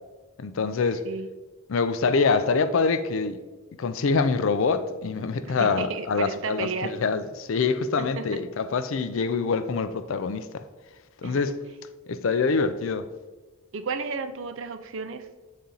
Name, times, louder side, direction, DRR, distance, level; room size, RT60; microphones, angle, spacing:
voice 1, 0.4-1.0 1.7-3.4 3.8-10.6 11.2-11.6 12.1-13.1, left 4 dB, 65° left, 0.4 m, -25 dB
voice 2, 5.5-6.9 8.0-8.4 11.2-11.4 13.7-15.3, right 4 dB, 60° right, 0.5 m, -33 dB
7.1 x 4.2 x 3.8 m
head